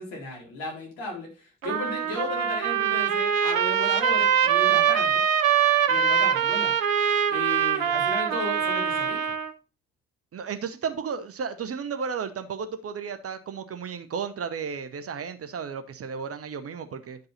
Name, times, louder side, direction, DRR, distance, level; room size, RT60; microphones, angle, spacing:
voice 1, 0.0-5.2 5.9-6.8 7.3-9.3, left 2 dB, 60° left, 3.9 m, -35 dB
Trumpet, 1.6-9.5, right 8 dB, 85° right, 0.7 m, -23 dB
voice 2, 10.3-17.2, right 6 dB, 35° right, 1.1 m, -33 dB
10.5 x 5.3 x 4.1 m
figure-of-eight pair, 50°, 39 cm